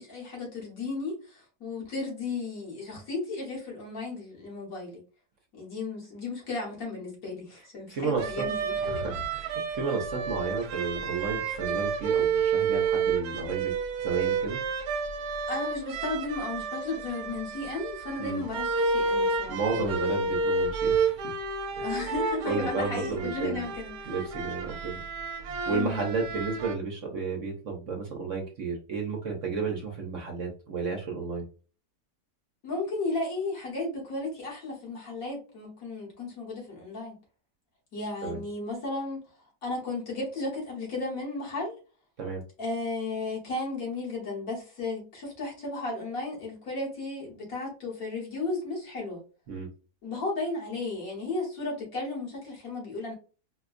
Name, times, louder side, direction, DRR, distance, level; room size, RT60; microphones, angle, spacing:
voice 1, 0.0-5.0 5.5-9.1 15.5-20.0 21.8-24.1 25.7-26.1 32.6-37.2 37.9-39.3 39.6-41.8 42.6-49.2 50.0-53.1, left 3 dB, 60° left, 1.7 m, -34 dB
voice 2, 7.9-8.5 8.8-13.8 14.0-14.6 18.2-18.4 19.5-21.3 21.8-21.9 22.5-23.7 24.1-25.0 25.4-31.4 38.2-38.4 42.2-42.4 49.5-49.7, right 4 dB, 60° right, 1.0 m, -32 dB
sound 1, 8.2-26.7, right 4 dB, 75° right, 1.1 m, -30 dB
4.3 x 2.2 x 2.4 m
omnidirectional pair, 1.7 m